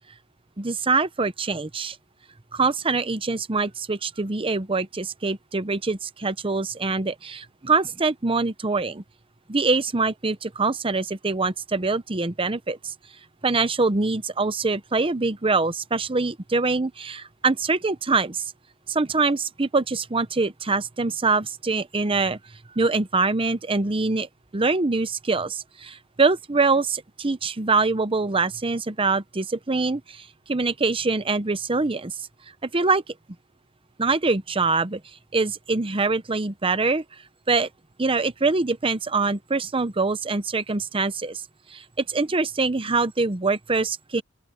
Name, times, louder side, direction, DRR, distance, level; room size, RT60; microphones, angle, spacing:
voice 1, 0.6-2.0 2.5-9.0 9.5-12.9 13.4-18.4 18.9-22.4 22.8-32.1 32.6-33.1 34.0-35.0 35.3-37.0 37.5-37.7 38.0-41.4 41.7-44.2, right 3 dB, 25° right, 0.8 m, -24 dB
open air
head